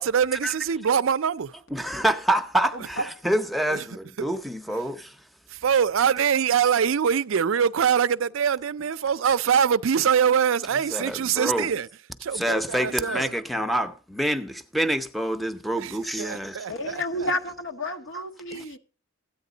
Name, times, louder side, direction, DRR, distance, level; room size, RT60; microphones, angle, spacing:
voice 1, 0.0-1.5 3.7-3.8 4.2-4.3 5.5-11.9 12.2-13.3 15.8-17.3 18.5-18.6, right 7 dB, 65° right, 0.4 m, -24 dB
voice 2, 1.7-5.1 10.9-11.7 12.3-16.7, right 1 dB, ahead, 0.6 m, -27 dB
voice 3, 2.7-3.1 16.7-18.8, left 1 dB, 65° left, 1.2 m, -31 dB
14.0 x 9.0 x 3.9 m
head